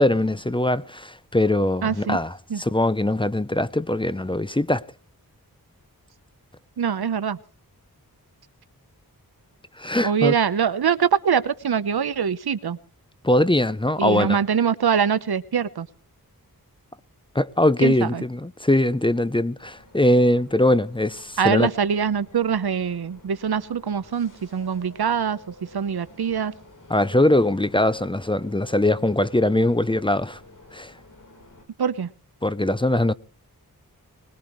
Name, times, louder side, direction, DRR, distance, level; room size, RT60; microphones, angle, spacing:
voice 1, 0.0-4.9 9.8-10.3 13.2-14.4 17.3-21.7 26.9-30.4 30.7-30.9 32.4-33.1, left 1 dB, 15° left, 0.7 m, -21 dB
voice 2, 1.8-2.2 2.5-2.6 6.8-7.4 10.0-12.8 14.0-15.9 17.8-18.2 21.4-26.5 31.8-32.1, right 7 dB, 90° right, 1.0 m, -23 dB
sound 1, 19.6-31.7, left 2 dB, 55° left, 4.0 m, -51 dB
21.0 x 21.0 x 3.2 m
wide cardioid pair, 70°, 37 cm